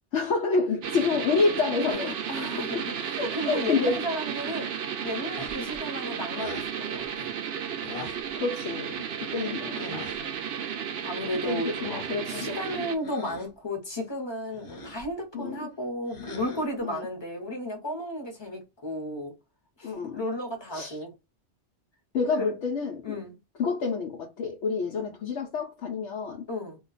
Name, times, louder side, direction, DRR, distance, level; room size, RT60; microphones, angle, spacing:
voice 1, 0.1-2.2 2.6-2.8 3.2-4.0 8.4-8.9 9.3-9.9 11.4-12.6 15.3-15.7 16.8-17.1 19.8-20.2 20.7-21.0 22.1-23.2 23.6-26.5, left 4 dB, 85° left, 1.0 m, -28 dB
sound 1, 0.8-13.0, right 8 dB, 70° right, 0.8 m, -33 dB
voice 2, 1.9-4.7 5.0-7.3 9.8-10.1 11.0-11.8 12.3-19.3 19.8-21.1 22.3-22.6 23.0-23.4 26.5-26.8, left 1 dB, 25° left, 1.0 m, -34 dB
sound 2, 5.4-5.8 6.4-6.7 7.8-8.3 9.7-10.2 11.6-12.2 13.0-13.5 14.5-15.1 16.1-16.8, left 3 dB, 55° left, 1.1 m, -41 dB
2.4 x 2.2 x 3.9 m
omnidirectional pair, 1.1 m